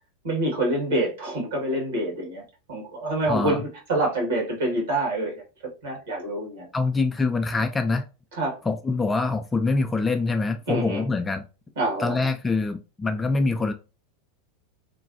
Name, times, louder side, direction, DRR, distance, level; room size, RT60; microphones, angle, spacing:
voice 1, 0.2-2.4 2.7-5.4 5.8-6.7 8.3-8.6 10.7-11.0 11.7-12.2, right 1 dB, 60° right, 0 dB, 1.7 m, -26 dB
voice 2, 3.3-3.6 6.7-8.1 8.7-11.5 12.0-13.7, left 3 dB, 15° left, 7 dB, 0.3 m, -24 dB
3.1 x 2.2 x 2.6 m, 0.31 s
figure-of-eight pair, 85°, 0 cm